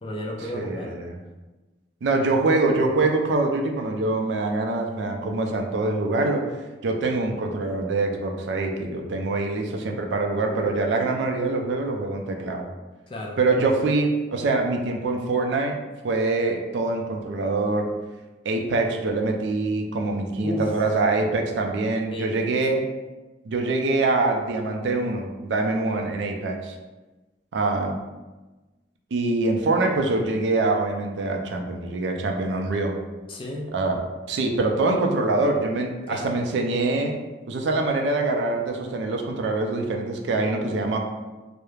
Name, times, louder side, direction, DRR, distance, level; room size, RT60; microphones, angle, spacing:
voice 1, 0.0-1.0 13.1-13.4 20.4-20.8 22.1-22.5 33.3-33.7 36.1-36.4, left 1 dB, 30° left, -1 dB, 0.4 m, -32 dB
voice 2, 0.5-1.2 2.0-6.4 6.8-12.6 13.4-15.7 16.0-17.9 18.4-22.8 23.4-26.7 27.5-28.0 29.1-32.9 33.7-34.0 34.3-37.2 37.5-41.0, right 3 dB, 85° right, 2 dB, 0.4 m, -24 dB
2.3 x 2.0 x 3.0 m, 1.2 s
head